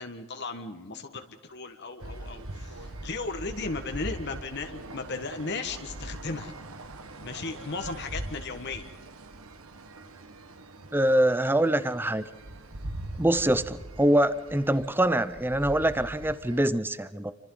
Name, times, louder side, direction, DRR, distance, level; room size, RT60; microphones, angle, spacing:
voice 1, 0.0-6.5 7.2-8.9, left 3 dB, 50° left, 6 dB, 1.6 m, -36 dB
sound 1, 2.0-16.7, right 1 dB, 75° right, 1.5 m, -42 dB
voice 2, 10.9-12.3 13.2-17.3, right 1 dB, 10° right, 14 dB, 0.7 m, -24 dB
29.0 x 25.5 x 4.0 m, 1.3 s
head